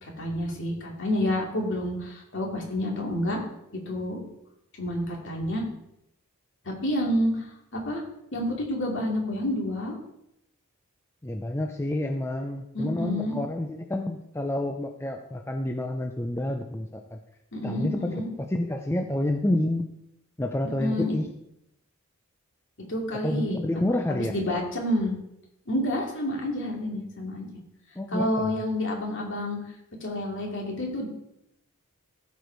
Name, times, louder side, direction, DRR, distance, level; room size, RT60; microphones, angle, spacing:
voice 1, 0.0-3.4 3.9-4.2 4.8-5.6 6.7-7.5 7.7-8.0 8.3-9.9 12.7-13.4 17.5-18.3 20.8-21.2 22.8-23.6 24.1-25.2 25.7-27.6 28.1-29.6 30.0-31.1, left 1 dB, 55° left, -1 dB, 2.5 m, -29 dB
voice 2, 11.2-17.2 17.6-19.9 20.4-21.3 23.2-24.4 28.0-28.5, left 1 dB, 10° left, 3 dB, 0.5 m, -29 dB
15.5 x 5.1 x 4.6 m, 0.82 s
head